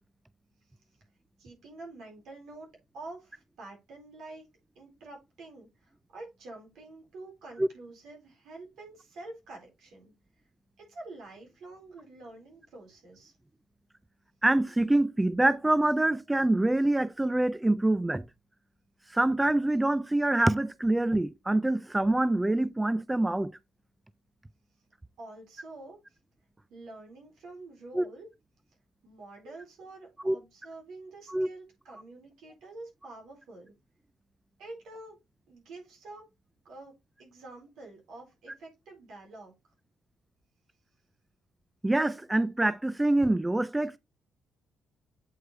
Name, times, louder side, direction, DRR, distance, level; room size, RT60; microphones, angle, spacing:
voice 1, 1.4-4.5 4.8-10.1 10.8-13.3 25.2-26.2 26.7-28.3 29.0-33.7 34.6-35.2 35.5-36.3 36.6-39.5, right 2 dB, 80° right, 4.2 m, -47 dB
voice 2, 14.4-18.2 19.1-23.5 27.9-28.1 30.2-30.4 31.3-31.5 41.8-44.0, right 1 dB, 10° right, 0.3 m, -25 dB
8.1 x 4.6 x 3.2 m
cardioid pair, 90°, 0 cm